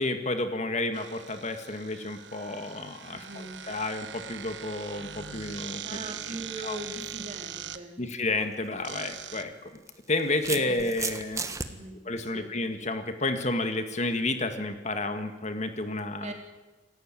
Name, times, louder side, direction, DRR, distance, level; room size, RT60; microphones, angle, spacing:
voice 1, 0.0-6.0 6.6-6.8 8.0-9.7 10.1-11.5 12.1-16.3, left 2 dB, 40° left, 7 dB, 1.9 m, -31 dB
sound 1, 0.9-7.8 8.8-9.4, right 9 dB, 85° right, 1.3 m, -41 dB
voice 2, 3.1-3.6 5.8-8.0 10.5-10.8 11.7-12.0 12.3-12.5 16.2-16.3, right 1 dB, 40° right, 3 dB, 3.7 m, -40 dB
sound 2, 8.5-8.7 9.7-11.7, right 4 dB, 20° right, 1.4 m, -34 dB
27.5 x 15.0 x 9.1 m, 1.2 s
head